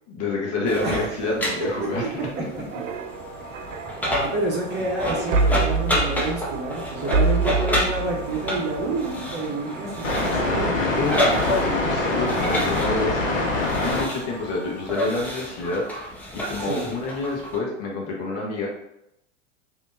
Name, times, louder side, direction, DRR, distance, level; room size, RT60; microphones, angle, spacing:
voice 1, 0.1-2.3 10.7-13.2 13.8-18.7, left 2 dB, 40° left, -2 dB, 1.0 m, -28 dB
sound 1, 0.6-17.6, equal, 5° left, 0.5 m, -30 dB
sound 2, 0.6-12.9 13.3-13.5, right 4 dB, 85° right, 0.5 m, -29 dB
voice 2, 1.6-2.1 4.0-10.7 16.6-16.9, right 2 dB, 25° right, -3 dB, 1.0 m, -29 dB
sound 3, 3.1-14.9, left 2 dB, 80° left, 1.0 m, -28 dB
3.4 x 2.8 x 2.6 m, 0.83 s
hypercardioid pair, 105°, 38 cm